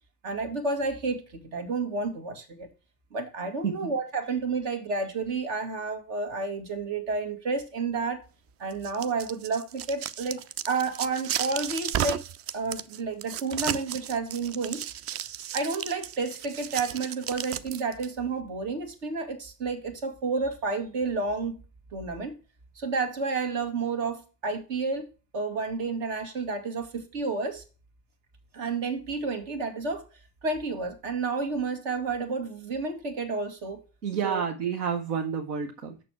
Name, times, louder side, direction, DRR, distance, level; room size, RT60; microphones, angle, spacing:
voice 1, 0.2-2.7 3.1-8.2 8.6-10.4 10.7-12.2 12.5-14.8 15.5-21.6 21.9-22.4 22.8-25.1 25.3-27.6 28.5-30.1 30.4-33.8 34.2-34.4, right 4 dB, 60° right, 1.9 m, -30 dB
sound 1, 8.7-18.1, right 10 dB, 35° right, 0.4 m, -34 dB
voice 2, 34.0-36.0, right 7 dB, 75° right, 0.9 m, -29 dB
6.8 x 6.3 x 4.5 m
figure-of-eight pair, 60°, 47 cm